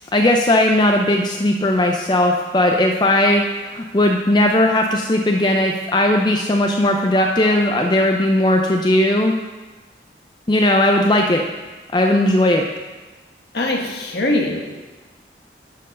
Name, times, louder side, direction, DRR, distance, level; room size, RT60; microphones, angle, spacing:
voice 1, 0.1-9.4 10.5-11.4 11.9-12.6, left 1 dB, 25° left, 2 dB, 0.5 m, -17 dB
voice 2, 13.5-14.8, left 1 dB, 65° left, 1 dB, 1.3 m, -22 dB
11.5 x 4.5 x 5.4 m, 1.2 s
head